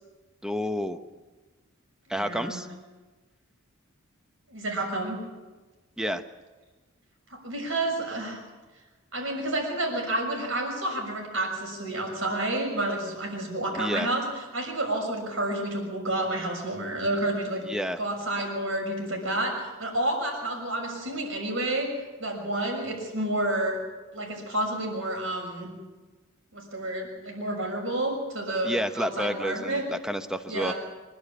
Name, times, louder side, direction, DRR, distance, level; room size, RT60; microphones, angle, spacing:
voice 1, 0.4-1.0 2.1-2.7 6.0-6.2 13.8-14.1 17.7-18.0 28.6-30.7, equal, 5° right, 8 dB, 0.9 m, -30 dB
voice 2, 2.1-2.6 4.5-5.2 7.3-8.4 9.1-17.6 18.0-21.9 22.2-23.8 24.1-25.7 26.5-29.8 30.5-30.7, right 1 dB, 65° right, 2 dB, 6.5 m, -30 dB
25.5 x 11.5 x 8.8 m, 1.2 s
head